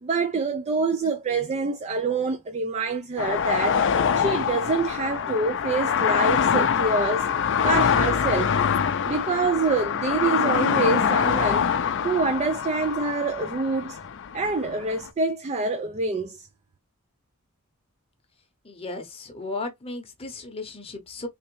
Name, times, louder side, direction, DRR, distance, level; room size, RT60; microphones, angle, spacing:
voice 1, 0.0-3.8 4.1-7.3 7.6-8.5 9.1-11.7 12.0-14.0 14.3-16.5, right 3 dB, 30° right, 0.3 m, -26 dB
sound 1, 3.2-15.1, left 7 dB, 55° left, 0.5 m, -24 dB
voice 2, 18.6-21.3, left 3 dB, 25° left, 0.8 m, -35 dB
3.4 x 3.1 x 3.0 m
head